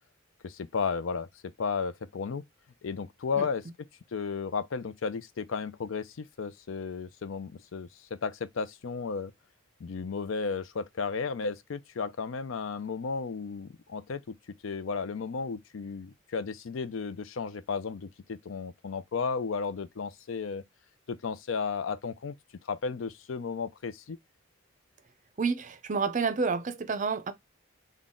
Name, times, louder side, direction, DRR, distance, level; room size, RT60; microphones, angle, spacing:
voice 1, 0.4-1.3 1.6-2.4 2.8-3.6 4.1-9.3 9.8-14.3 14.6-20.6 21.1-22.3 22.7-24.2, left 5 dB, 70° left, 0.5 m, -34 dB
voice 2, 25.4-27.3, right 5 dB, 40° right, 0.5 m, -29 dB
3.9 x 2.2 x 3.6 m
head